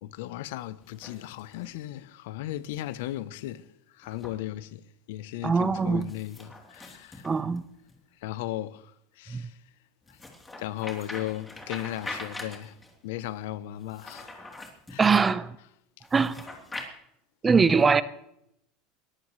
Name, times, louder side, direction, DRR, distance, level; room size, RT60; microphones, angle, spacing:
voice 1, 0.0-7.3 8.2-9.6 10.1-10.2 10.6-12.8 13.0-14.3 14.9-15.1, left 14 dB, 75° left, 0.7 m, -36 dB
sound 1, 0.8-1.8 4.0-4.4 6.0-7.9 10.1-12.9 13.8-15.0 16.0-16.9, left 2 dB, 15° left, 3.3 m, -43 dB
voice 2, 5.4-6.1 7.2-7.6 9.3-9.4 15.0-15.5 16.1-16.3 17.4-18.0, right 5 dB, 20° right, 0.8 m, -22 dB
22.0 x 14.5 x 3.2 m
supercardioid pair, 120°, 0 cm